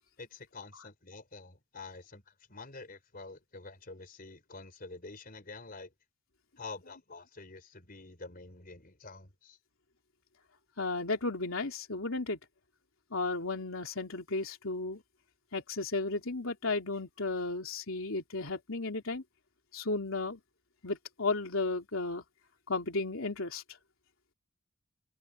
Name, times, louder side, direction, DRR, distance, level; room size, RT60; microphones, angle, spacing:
voice 1, 0.2-2.2 2.5-5.9 6.6-9.6, left 3 dB, 45° left, 4.2 m, -47 dB
voice 2, 10.8-12.4 13.1-15.0 15.5-19.2 19.7-20.4 20.8-22.2 22.7-23.6, left 3 dB, 80° left, 3.1 m, -34 dB
head